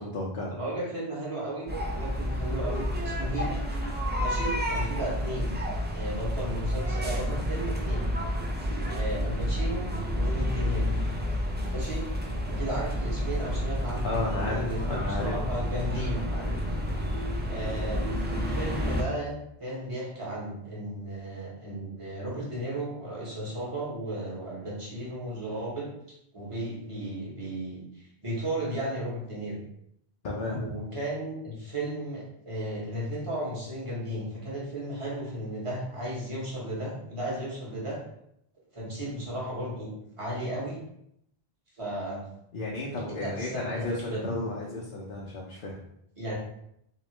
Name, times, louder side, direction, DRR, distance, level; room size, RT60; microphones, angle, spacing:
voice 1, 0.0-0.5 14.0-15.7 16.3-16.8 30.2-30.7 42.5-45.8, left 2 dB, 60° left, -4 dB, 0.8 m, -33 dB
voice 2, 0.5-3.5 4.2-5.6 5.9-8.1 8.9-9.8 10.1-10.9 11.7-12.0 12.4-16.2 17.4-18.0 18.3-25.9 26.3-29.6 30.5-38.0 38.7-40.8 41.8-42.2 43.1-44.3 46.2-46.3, right 1 dB, 30° right, -5 dB, 1.3 m, -34 dB
sound 1, 1.7-19.0, equal, 15° right, 0.4 m, -30 dB
3.6 x 2.9 x 3.2 m, 0.75 s
omnidirectional pair, 1.0 m